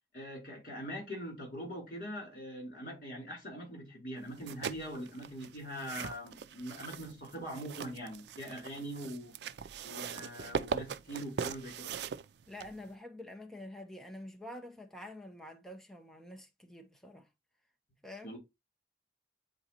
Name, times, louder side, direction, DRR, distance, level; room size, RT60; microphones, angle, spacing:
voice 1, 0.1-9.3 9.8-11.9 18.2-18.4, equal, 50° left, 4.0 m, -42 dB
sound 1, 4.3-12.9, right 6 dB, 75° right, 0.4 m, -41 dB
voice 2, 12.5-17.3 18.0-18.4, left 1 dB, ahead, 0.9 m, -47 dB
8.7 x 4.0 x 2.9 m
head